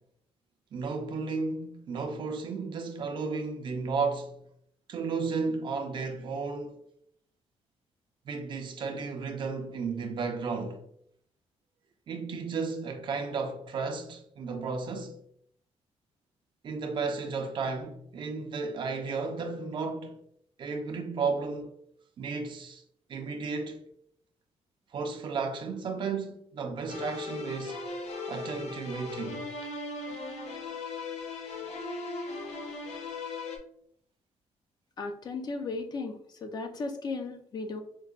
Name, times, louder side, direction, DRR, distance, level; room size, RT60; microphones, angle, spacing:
voice 1, 0.7-4.4 4.9-6.8 8.3-10.8 12.1-15.2 16.6-20.2 20.6-21.8 22.2-22.8 23.1-23.8 24.9-27.8 28.3-29.4 30.0-30.1, right 4 dB, 45° right, 0.4 m, -33 dB
sound 1, 26.9-33.6, left 3 dB, 85° left, 0.6 m, -38 dB
voice 2, 35.0-37.8, left 3 dB, 40° left, 0.4 m, -36 dB
4.5 x 2.1 x 2.3 m
cardioid pair, 150°, 11 cm